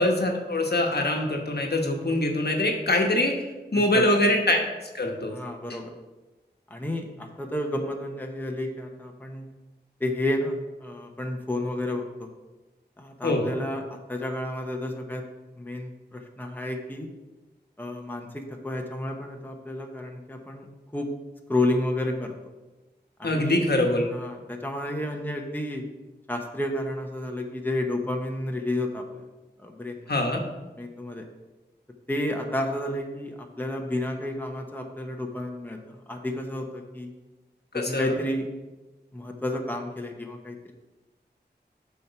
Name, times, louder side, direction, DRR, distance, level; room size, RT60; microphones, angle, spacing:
voice 1, 0.0-3.3 3.7-4.6 4.9-5.4 13.2-13.5 23.2-24.0 30.1-30.4 37.7-38.1, left 1 dB, 65° left, 2 dB, 1.2 m, -23 dB
voice 2, 5.3-5.9 6.7-9.5 10.0-12.3 13.0-15.2 15.6-17.1 17.8-20.7 20.9-21.1 21.5-22.3 23.2-25.8 26.3-29.2 29.6-30.1 30.8-31.2 32.1-37.1 37.7-38.5 39.1-40.7, left 1 dB, 10° left, 2 dB, 0.9 m, -31 dB
7.0 x 4.5 x 5.7 m, 1.1 s
wide cardioid pair, 60°, 18 cm